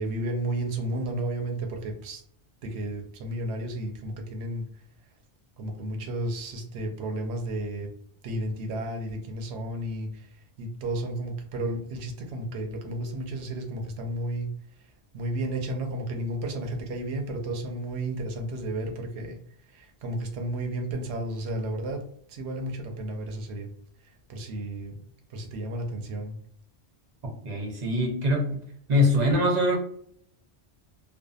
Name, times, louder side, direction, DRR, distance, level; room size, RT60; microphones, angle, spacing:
voice 1, 0.0-2.2 2.6-4.7 5.6-7.9 8.2-14.5 14.8-23.7 24.0-25.0 25.3-26.4, right 1 dB, 80° right, 3 dB, 0.8 m, -33 dB
voice 2, 27.4-28.6 28.9-29.8, left 1 dB, 45° right, 0 dB, 0.7 m, -23 dB
2.6 x 2.3 x 2.3 m, 0.64 s
omnidirectional pair, 1.1 m